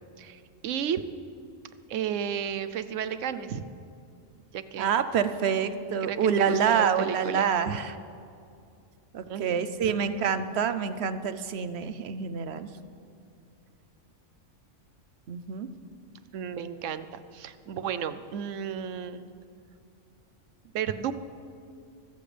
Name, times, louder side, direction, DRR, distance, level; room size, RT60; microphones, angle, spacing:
voice 1, 0.2-1.0 1.9-3.6 4.5-4.9 6.0-7.8 9.3-10.0 16.3-19.2 20.7-21.1, right 8 dB, 85° right, 12 dB, 1.0 m, -33 dB
voice 2, 4.8-7.9 9.1-12.7 15.3-15.7, right 7 dB, 60° right, 11 dB, 0.9 m, -27 dB
23.5 x 14.0 x 3.4 m, 2.5 s
omnidirectional pair, 1.3 m